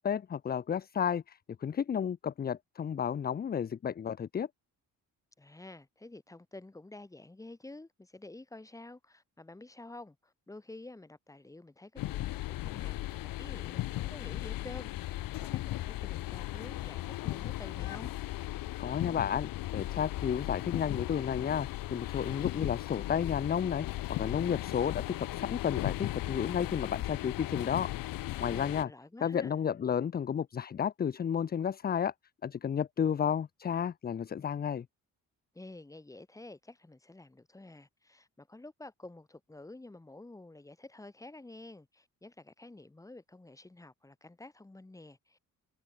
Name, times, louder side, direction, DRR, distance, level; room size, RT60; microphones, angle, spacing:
voice 1, 0.0-4.5 18.8-27.9 28.4-28.9 29.2-32.1 32.4-34.8, left 8 dB, 30° left, 0.8 m, -32 dB
voice 2, 5.4-18.1 28.5-29.5 35.5-45.4, left 2 dB, 10° left, 4.8 m, -50 dB
sound 1, 12.0-28.8, left 16 dB, 85° left, 1.6 m, -37 dB
cardioid pair, 155°, 33 cm